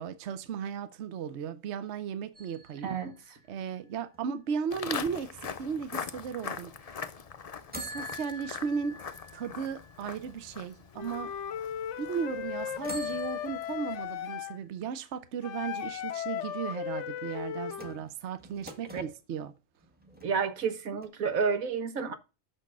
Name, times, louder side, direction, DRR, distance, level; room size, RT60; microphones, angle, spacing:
voice 1, 0.0-2.9 3.5-7.0 7.8-9.0 9.3-11.3 12.0-19.5, right 7 dB, 60° right, 1.0 m, -36 dB
sound 1, 2.3-4.2 7.7-10.8 11.4-11.5 12.8-14.6 17.7-19.1 19.8-20.7 21.0-21.1, equal, 5° right, 1.6 m, -46 dB
voice 2, 2.8-3.4 18.9-19.0 20.2-22.1, right 6 dB, 90° right, 1.6 m, -30 dB
Walk footsteps, 4.7-13.9, left 6 dB, 45° left, 0.5 m, -42 dB
Wind instrument woodwind instrument, 10.9-14.6 15.4-18.0, left 9 dB, 65° left, 0.9 m, -36 dB
6.6 x 6.4 x 6.1 m
omnidirectional pair, 1.4 m